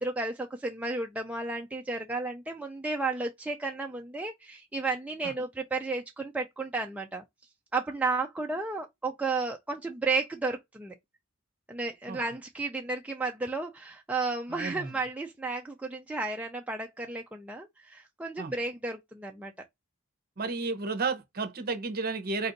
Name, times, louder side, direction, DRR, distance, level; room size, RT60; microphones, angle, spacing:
voice 1, 0.0-7.2 7.7-10.9 11.7-19.5, right 3 dB, 5° right, 0.3 m, -33 dB
voice 2, 14.5-14.9 18.4-18.5 20.4-22.5, right 4 dB, 40° right, 0.8 m, -32 dB
4.3 x 2.6 x 3.9 m
head